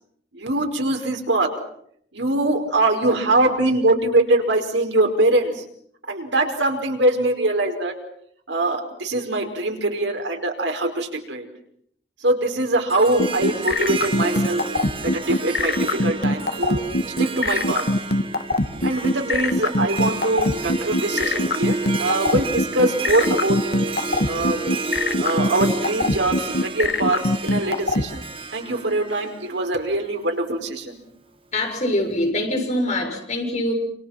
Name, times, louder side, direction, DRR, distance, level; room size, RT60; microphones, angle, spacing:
voice 1, 0.3-1.6 2.1-5.6 6.1-7.9 8.5-11.5 12.2-14.6 15.0-16.8 17.2-17.8 18.8-23.8 24.2-24.6 25.2-28.2 28.5-31.0, right 2 dB, 85° right, 5.2 m, -23 dB
Harp, 12.9-30.2, right 3 dB, 30° right, 1.6 m, -31 dB
sound 1, 13.2-28.0, left 2 dB, 55° left, 1.6 m, -21 dB
voice 2, 31.5-33.7, left 1 dB, 40° left, 6.7 m, -24 dB
28.5 x 27.5 x 5.9 m
head